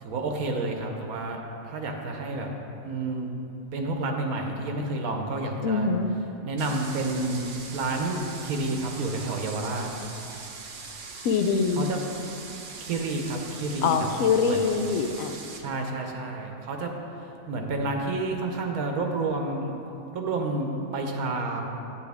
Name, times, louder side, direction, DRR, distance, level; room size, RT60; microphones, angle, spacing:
voice 1, 0.0-2.5 2.8-3.3 3.7-5.9 6.4-9.9 11.7-12.0 12.8-14.1 14.4-14.7 15.6-17.0 17.5-19.7 20.1-21.6, right 2 dB, 85° right, 2 dB, 1.2 m, -30 dB
voice 2, 5.6-6.1 11.2-11.9 13.8-15.4, left 5 dB, 75° left, 7 dB, 1.0 m, -24 dB
sound 1, 6.6-15.6, right 4 dB, 50° right, 0.6 m, -41 dB
8.5 x 8.4 x 3.5 m, 2.8 s
omnidirectional pair, 1.5 m